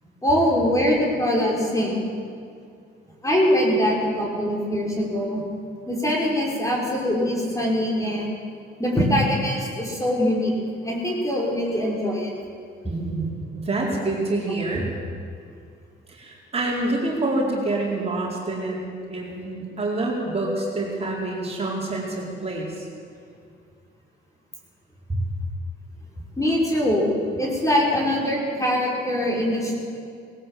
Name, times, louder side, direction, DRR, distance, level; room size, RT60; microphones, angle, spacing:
voice 1, 0.2-2.0 3.2-5.4 5.9-8.3 8.8-10.5 10.8-12.3 26.4-29.7, equal, 15° left, -2 dB, 5.7 m, -23 dB
voice 2, 12.9-14.9 16.1-18.8 19.1-22.9 25.1-25.2, right 2 dB, 30° right, -3 dB, 4.6 m, -27 dB
19.5 x 17.0 x 7.7 m, 2.3 s
cardioid pair, 90°, 20 cm